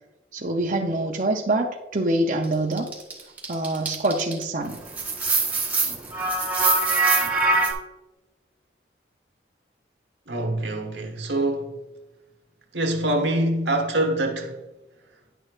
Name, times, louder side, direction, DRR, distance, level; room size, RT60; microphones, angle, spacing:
voice 1, 0.3-2.9 3.5-4.8, right 2 dB, 45° right, 0.6 m, -25 dB
sound 1, 2.8-4.4 4.7-7.7, right 3 dB, 10° right, 0.9 m, -22 dB
voice 2, 10.3-11.8 12.7-14.6, right 1 dB, 85° right, 1.2 m, -25 dB
10.0 x 6.3 x 2.4 m
head